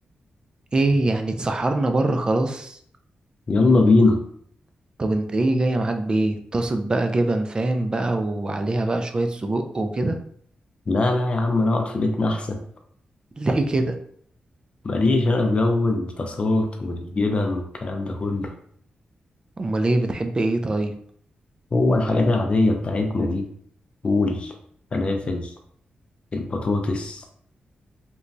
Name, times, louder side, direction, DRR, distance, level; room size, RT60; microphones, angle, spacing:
voice 1, 0.7-2.8 5.0-10.2 13.4-13.9 19.6-20.9, right 2 dB, 30° right, 6 dB, 0.3 m, -23 dB
voice 2, 3.5-4.2 10.9-12.6 14.8-18.5 21.7-23.5 24.0-24.5 24.9-25.5 26.3-27.2, left 2 dB, 40° left, 4 dB, 0.4 m, -21 dB
3.0 x 2.3 x 2.5 m, 0.63 s
cardioid pair, 90°, 3 cm